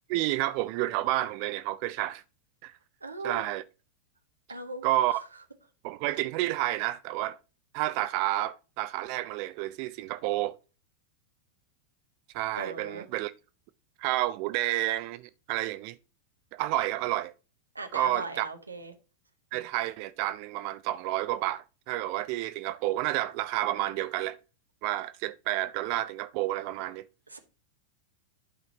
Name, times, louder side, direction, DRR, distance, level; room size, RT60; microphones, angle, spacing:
voice 1, 0.1-2.2 2.6-2.7 3.2-3.6 4.8-5.2 5.8-7.4 7.7-10.6 12.3-13.3 14.0-16.0 16.5-17.3 17.9-18.5 19.5-24.4 24.8-27.0, right 15 dB, 45° right, 0.3 m, -30 dB
voice 2, 3.0-3.4 4.5-4.9 12.6-13.1 17.7-18.9 27.3-27.4, right 3 dB, 80° right, 1.0 m, -38 dB
11.5 x 5.0 x 2.8 m
figure-of-eight pair, 90°, 0 cm